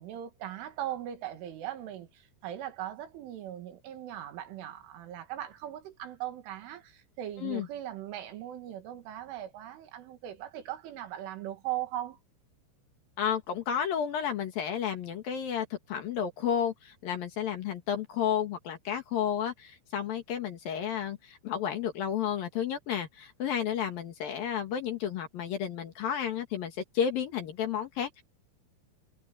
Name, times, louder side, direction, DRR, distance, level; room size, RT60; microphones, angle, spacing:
voice 1, 0.0-12.2, right 12 dB, 80° right, 4.6 m, -39 dB
voice 2, 13.2-28.2, left 8 dB, 60° left, 2.9 m, -32 dB
omnidirectional pair, 5.5 m